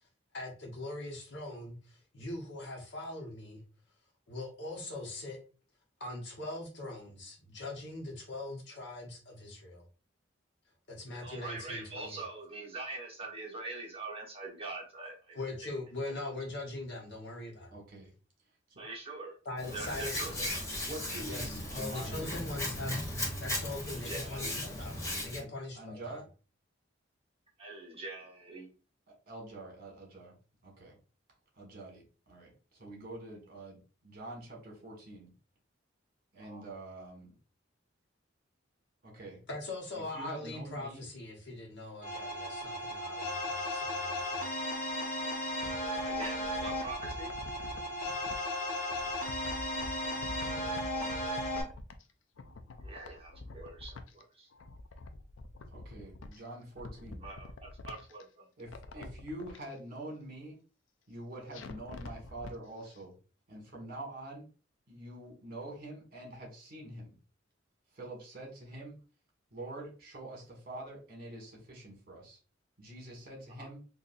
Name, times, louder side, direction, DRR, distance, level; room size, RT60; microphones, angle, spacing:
voice 1, 0.3-3.6 4.3-5.4 6.0-9.8 10.9-12.2 15.3-17.8 19.4-20.3 21.3-26.2 39.5-44.5, left 2 dB, 65° left, 0 dB, 1.2 m, -41 dB
voice 2, 11.2-15.7 18.8-19.3 19.7-20.8 21.7-21.8 23.9-25.0 27.6-28.7 36.4-36.6 45.9-47.3 52.8-54.5 57.2-58.5 58.9-59.0 73.6-73.7, right 3 dB, 30° right, -3 dB, 1.3 m, -44 dB
voice 3, 17.7-18.1 20.8-22.5 25.4-25.5 25.7-26.2 29.1-30.3 30.6-30.9 31.6-35.3 36.3-37.3 39.0-39.4 40.1-41.0 55.7-57.3 58.6-60.6 61.1-63.1 63.5-64.4 64.9-67.1 67.9-68.9 69.5-72.4 72.8-73.8, right 1 dB, 50° right, -1 dB, 1.7 m, -45 dB
Hands, 19.6-25.4, left 1 dB, 15° left, 1.0 m, -37 dB
sound 1, 42.0-51.6, left 1 dB, 45° left, 1.2 m, -35 dB
sound 2, 45.3-48.4 48.9-52.1 52.4-54.2 54.5-56.4 56.7-58.2 58.6-59.6 61.5-62.5 62.9-63.0, left 2 dB, 90° left, 0.5 m, -47 dB
4.0 x 2.6 x 2.5 m, 0.36 s
head